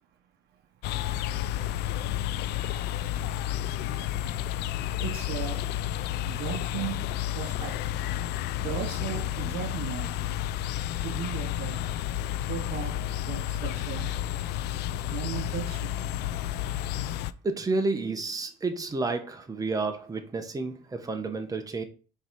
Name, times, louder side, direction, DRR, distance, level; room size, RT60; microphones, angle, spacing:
sound 1, 0.8-17.3, left 12 dB, 80° left, 0.4 m, -31 dB
voice 1, 5.0-5.6 6.3-7.8 8.6-10.1 11.0-11.9 12.5-13.0 13.2-14.1 15.1-15.9, right 10 dB, 75° right, 0.7 m, -36 dB
voice 2, 17.4-21.8, right 3 dB, 20° right, 1.1 m, -30 dB
5.5 x 4.1 x 4.6 m
cardioid pair, 110°, 17 cm